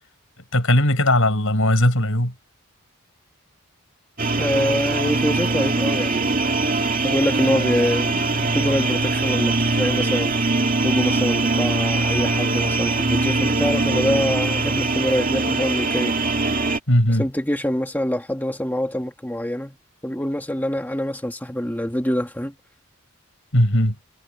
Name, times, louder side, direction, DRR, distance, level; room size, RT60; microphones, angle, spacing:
voice 1, 0.5-2.3 16.9-17.2 23.5-23.9, left 1 dB, 65° left, 6.9 m, -18 dB
sound 1, 4.2-16.8, right 3 dB, 40° right, 2.3 m, -22 dB
voice 2, 4.4-6.4 7.0-10.4 10.8-16.1 17.1-19.8 20.0-22.6, left 1 dB, 10° left, 1.7 m, -25 dB
head